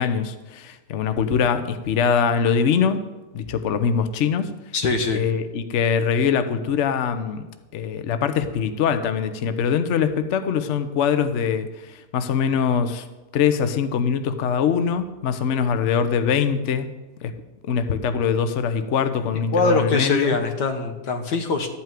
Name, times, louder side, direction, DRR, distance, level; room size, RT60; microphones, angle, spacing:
voice 1, 0.0-3.0 3.3-4.5 5.1-7.5 7.7-13.1 13.3-16.9 17.2-17.3 17.7-20.4, left 7 dB, 55° left, 9 dB, 1.0 m, -23 dB
voice 2, 4.7-5.3 19.5-21.7, left 3 dB, 90° left, 5 dB, 1.9 m, -22 dB
12.5 x 5.8 x 9.1 m, 1.1 s
omnidirectional pair, 1.8 m